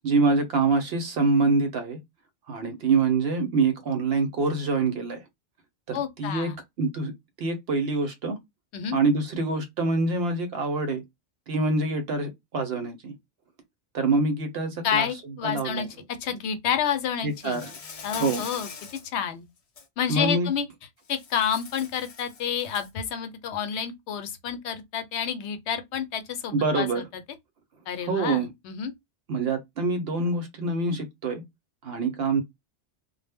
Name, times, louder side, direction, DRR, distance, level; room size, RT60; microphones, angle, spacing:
voice 1, 0.0-2.0 2.5-5.2 5.9-6.5 6.8-7.1 7.4-8.4 8.9-11.0 11.5-13.2 13.9-15.1 15.4-15.9 17.2-17.7 18.2-18.4 20.1-20.5 26.5-27.0 28.0-28.5 29.3-31.4 31.8-32.4, right 3 dB, 65° right, 0.8 m, -25 dB
voice 2, 5.9-6.6 8.7-9.0 14.8-15.9 16.2-17.6 18.0-18.7 19.0-19.5 20.0-20.7 21.1-27.2 27.9-28.9, left 8 dB, 75° left, 0.8 m, -29 dB
Insect, 17.3-19.1 19.6-19.9 21.1-23.0, left 5 dB, 50° left, 0.4 m, -42 dB
2.1 x 2.0 x 3.4 m
omnidirectional pair, 1.2 m